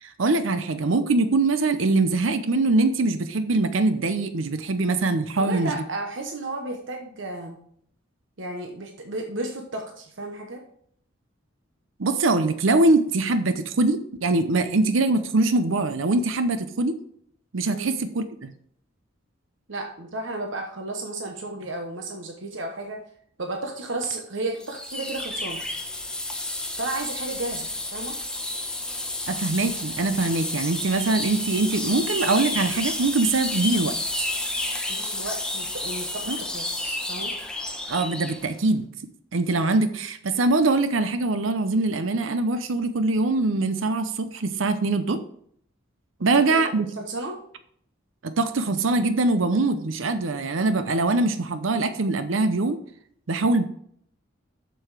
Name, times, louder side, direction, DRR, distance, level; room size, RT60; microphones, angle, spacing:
voice 1, 0.0-5.8 12.0-17.0 17.5-18.2 29.3-33.9 36.3-36.4 37.9-38.9 39.3-45.2 46.2-46.9 48.2-52.8 53.3-53.6, right 2 dB, 85° right, 10 dB, 0.7 m, -23 dB
voice 2, 5.4-7.6 8.4-10.6 17.7-17.9 19.7-23.0 23.4-25.6 26.8-28.2 34.9-37.3 46.3-46.6 47.0-47.4, right 2 dB, 70° right, 3 dB, 1.2 m, -33 dB
sound 1, 24.6-38.5, left 2 dB, 5° left, 1.0 m, -31 dB
7.6 x 7.0 x 4.9 m, 0.64 s
head